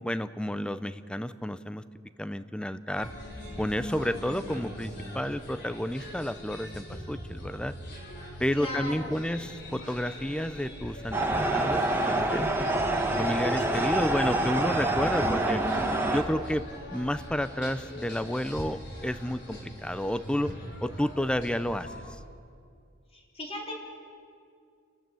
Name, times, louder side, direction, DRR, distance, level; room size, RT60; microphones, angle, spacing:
voice 1, 0.0-1.8 2.2-3.1 3.6-7.7 8.4-12.7 13.2-15.6 16.1-16.6 16.9-20.5 20.8-21.9, equal, 5° left, 13 dB, 0.5 m, -31 dB
sound 1, 2.9-22.1, equal, 60° left, 4.9 m, -41 dB
voice 2, 8.5-9.1 23.1-23.7, left 1 dB, 30° left, -2 dB, 3.9 m, -37 dB
sound 2, 11.1-16.2, right 2 dB, 10° right, 1.6 m, -26 dB
29.5 x 12.5 x 7.8 m, 2.3 s
head